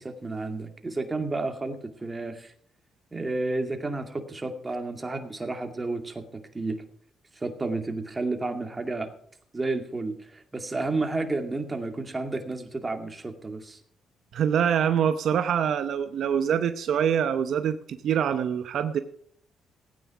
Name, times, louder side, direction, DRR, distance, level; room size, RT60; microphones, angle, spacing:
voice 1, 0.0-2.5 3.1-6.8 7.4-9.1 9.5-13.8, right 2 dB, 20° right, 6 dB, 2.2 m, -31 dB
voice 2, 14.3-19.0, right 8 dB, 70° right, 9 dB, 0.8 m, -25 dB
16.0 x 9.5 x 5.0 m, 0.63 s
cardioid pair, 90°, 0 cm